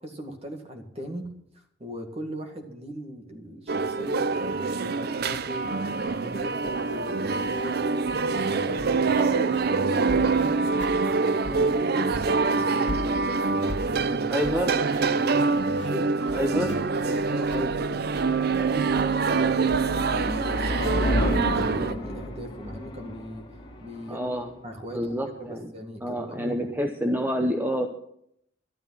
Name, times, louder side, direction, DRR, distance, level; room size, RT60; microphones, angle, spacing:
voice 1, 0.0-1.3 1.5-8.9 9.2-10.6 11.0-11.7 11.9-14.6 14.9-15.3 15.9-16.1 17.3-18.1 18.4-19.8 20.2-23.4 23.8-24.3 24.6-26.6, equal, 35° right, 5 dB, 2.1 m, -38 dB
sound 1, 3.7-21.9, right 4 dB, 55° right, 0.6 m, -25 dB
sound 2, 5.2-5.4 6.0-7.7 8.0-11.8 12.1-17.8 18.1-19.8, left 1 dB, 65° left, 1.4 m, -41 dB
voice 2, 14.3-14.7 16.3-16.8 24.1-24.5 24.9-25.7 26.0-27.9, equal, 10° right, 5 dB, 0.8 m, -28 dB
sound 3, 16.9-25.5, equal, 30° left, 2.3 m, -32 dB
12.5 x 12.5 x 5.9 m, 0.71 s
head